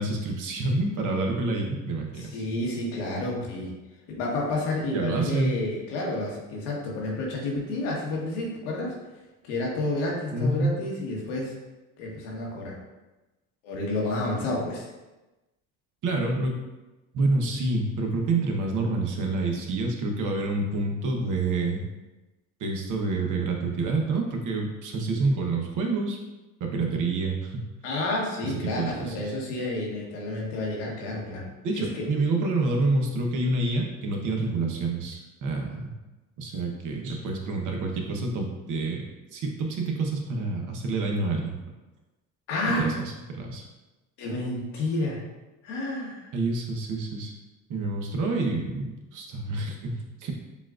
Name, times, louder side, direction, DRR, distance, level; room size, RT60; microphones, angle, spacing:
voice 1, 0.0-2.3 4.9-5.6 10.3-10.7 16.0-16.6 17.1-21.8 22.6-26.2 26.6-27.6 28.4-29.3 31.6-35.9 36.4-39.0 39.3-41.6 42.8-42.9 43.3-43.7 46.3-47.3 47.7-50.3, right 3 dB, 55° right, 1 dB, 1.0 m, -28 dB
voice 2, 2.1-3.7 4.1-9.0 9.4-11.5 12.0-12.7 13.6-14.9 27.8-31.5 31.8-32.1 42.5-42.9 44.2-45.2 45.6-46.3, left 2 dB, 90° left, -3 dB, 1.3 m, -30 dB
7.1 x 2.5 x 2.4 m, 1.1 s
supercardioid pair, 95°, 36 cm